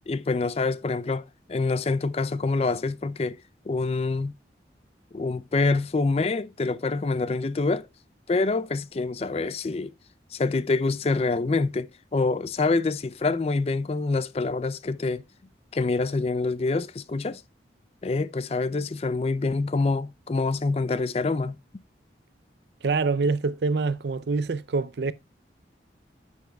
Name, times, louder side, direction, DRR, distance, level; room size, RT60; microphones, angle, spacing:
voice 1, 0.1-3.4 3.7-4.3 5.1-7.9 8.3-9.9 10.3-15.2 15.7-17.4 18.0-21.6, left 3 dB, 35° left, 0.4 m, -26 dB
voice 2, 22.8-25.1, right 4 dB, 65° right, 0.5 m, -25 dB
10.5 x 7.0 x 2.2 m
head